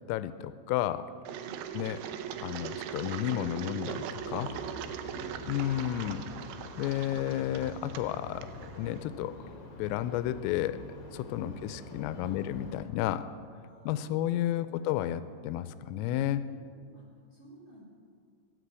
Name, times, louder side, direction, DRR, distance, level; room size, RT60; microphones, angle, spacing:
voice 1, 0.1-1.1 1.7-2.2 2.4-4.5 5.5-6.2 6.8-8.5 8.8-9.4 9.8-10.8 11.1-13.2 13.9-16.4, left 12 dB, 85° left, 13 dB, 3.2 m, -32 dB
Engine, 1.2-9.0, right 9 dB, 85° right, 2.4 m, -40 dB
voice 2, 1.4-1.8 4.4-5.6 11.3-11.6 12.2-12.4 13.6-14.3 14.6-14.8 16.5-17.0 17.3-17.9, equal, 25° right, -5 dB, 3.3 m, -52 dB
sound 1, 4.1-12.9, left 2 dB, 60° left, 3.7 m, -46 dB
18.0 x 9.9 x 8.1 m, 2.2 s
omnidirectional pair, 5.9 m